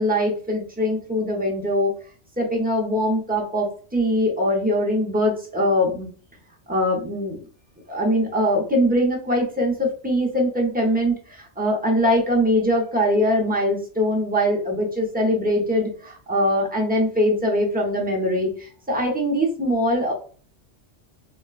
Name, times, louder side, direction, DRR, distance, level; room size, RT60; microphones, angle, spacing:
voice 1, 0.0-1.9 2.4-6.1 6.7-7.4 7.9-18.5 18.9-20.1, equal, 10° right, -2 dB, 0.5 m, -22 dB
4.0 x 2.1 x 2.3 m, 0.42 s
omnidirectional pair, 1.2 m